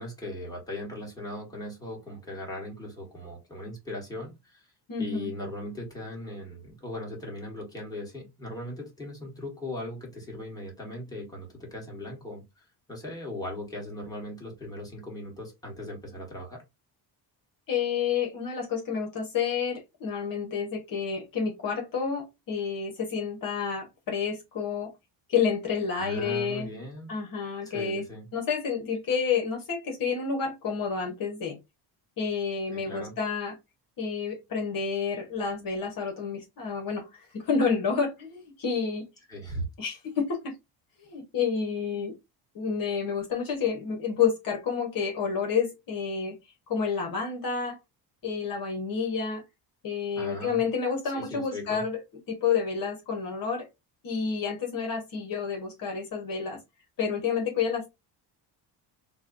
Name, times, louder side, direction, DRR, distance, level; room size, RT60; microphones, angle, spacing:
voice 1, 0.0-4.6 5.0-16.6 25.9-27.1 27.6-28.3 32.7-33.1 39.3-39.6 50.1-50.6 51.1-51.8, left 1 dB, 10° left, 1.5 m, -38 dB
voice 2, 4.9-5.3 17.7-24.9 25.3-26.7 27.1-28.0 28.3-31.6 32.2-33.5 34.0-39.0 39.8-40.5 41.0-42.1 42.5-46.4 46.7-47.8 48.2-49.4 49.8-52.0 52.3-53.7 54.0-56.6 57.0-57.9, left 6 dB, 50° left, 1.3 m, -29 dB
5.4 x 2.3 x 2.6 m
cardioid pair, 160°, 42 cm